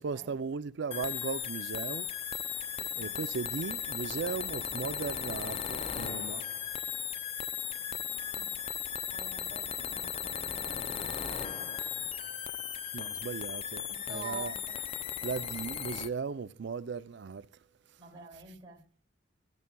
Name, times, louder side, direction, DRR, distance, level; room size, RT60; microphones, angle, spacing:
voice 1, 0.0-6.4 12.9-14.6 15.2-17.5, right 5 dB, 65° right, 0.4 m, -37 dB
sound 1, 0.9-16.1, left 8 dB, 30° left, 0.4 m, -36 dB
voice 2, 7.5-8.5 8.8-12.1 14.0-14.6 18.0-18.8, right 4 dB, 25° right, 2.7 m, -49 dB
13.0 x 10.5 x 2.3 m
head